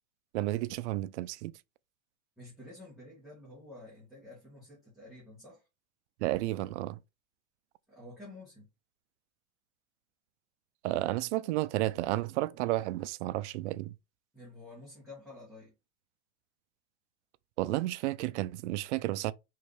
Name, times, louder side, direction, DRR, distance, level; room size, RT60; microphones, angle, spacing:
voice 1, 0.3-1.5 6.2-7.0 10.8-13.9 17.6-19.3, right 16 dB, 70° right, 0.5 m, -32 dB
voice 2, 2.4-5.6 7.9-8.7 14.3-15.7, left 2 dB, ahead, 1.7 m, -50 dB
4.8 x 3.2 x 3.1 m
supercardioid pair, 165°, 35 cm